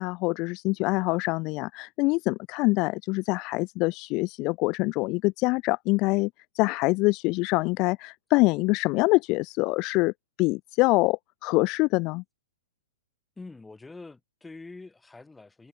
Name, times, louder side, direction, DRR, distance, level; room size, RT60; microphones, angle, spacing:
voice 1, 0.0-10.1 10.4-12.2, left 24 dB, 40° left, 0.3 m, -25 dB
voice 2, 13.4-15.7, left 3 dB, 5° left, 2.0 m, -45 dB
hypercardioid pair, 135°, 0 cm